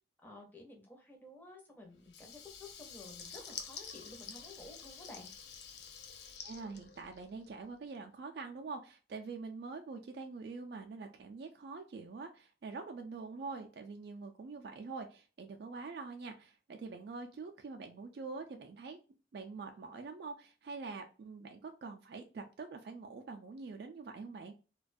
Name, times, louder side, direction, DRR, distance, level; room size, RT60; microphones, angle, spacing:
voice 1, 0.2-5.3, left 2 dB, 10° left, 0 dB, 0.6 m, -53 dB
Water tap faucet / Liquid, 2.0-7.6, left 7 dB, 70° left, 0.4 m, -49 dB
voice 2, 6.4-19.0 19.3-24.5, right 4 dB, 60° right, 4 dB, 0.3 m, -45 dB
2.4 x 2.2 x 2.5 m, 0.34 s
head